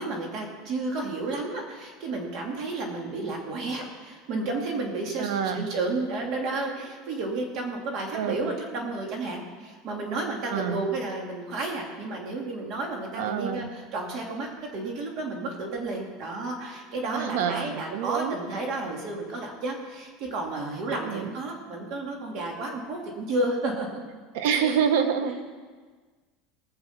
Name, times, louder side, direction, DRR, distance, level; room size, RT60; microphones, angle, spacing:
voice 1, 0.0-24.0 24.4-24.9 25.3-25.4, right 2 dB, 50° right, 1 dB, 2.8 m, -32 dB
voice 2, 5.2-5.7 8.1-8.4 10.5-10.9 13.2-13.7 17.1-18.4 21.0-21.3 24.3-25.4, right 7 dB, 80° right, 8 dB, 1.2 m, -27 dB
19.5 x 6.9 x 6.0 m, 1.4 s
supercardioid pair, 155°, 0 cm